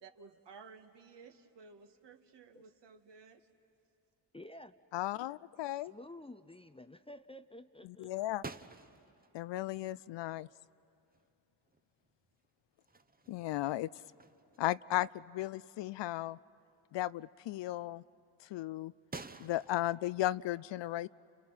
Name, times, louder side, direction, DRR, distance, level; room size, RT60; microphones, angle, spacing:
voice 1, 0.0-3.5, right 5 dB, 60° right, 5 dB, 1.9 m, -56 dB
voice 2, 4.3-4.7 5.8-8.1, left 1 dB, 10° left, 10 dB, 0.6 m, -51 dB
voice 3, 4.9-5.9 7.8-8.4 9.3-10.5 13.3-13.9 14.6-16.4 16.9-18.0 18.4-18.9 19.4-21.1, left 15 dB, 65° left, 19 dB, 0.5 m, -35 dB
sound 1, 8.4-9.3 11.1-11.3 11.7-12.5 12.8-14.7 15.1-15.3 16.0-16.1 19.1-19.8, right 3 dB, 20° right, 1.0 m, -49 dB
29.5 x 29.5 x 5.7 m, 2.6 s
supercardioid pair, 65°, 48 cm